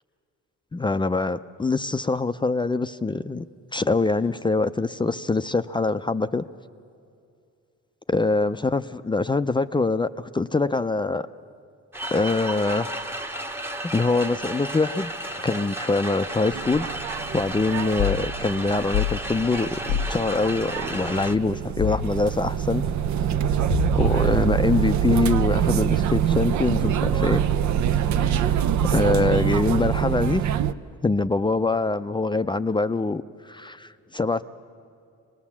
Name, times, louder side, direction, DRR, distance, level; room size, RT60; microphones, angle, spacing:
voice 1, 0.7-3.4 3.7-6.5 8.1-11.3 12.1-13.1 13.9-15.1 15.4-16.9 17.3-19.7 20.1-22.8 23.5-27.4 28.0-30.4 31.0-34.4, left 3 dB, 15° left, 11 dB, 0.4 m, -24 dB
sound 1, 11.9-21.4, right 1 dB, 10° right, 0.9 m, -33 dB
sound 2, 16.5-30.7, right 9 dB, 70° right, 0.6 m, -25 dB
sound 3, 18.0-18.2 18.9-19.2 19.9-20.2 21.8-22.1 23.7-24.2, left 12 dB, 60° left, 0.6 m, -26 dB
24.5 x 19.5 x 7.3 m, 2.5 s
cardioid pair, 90°, 30 cm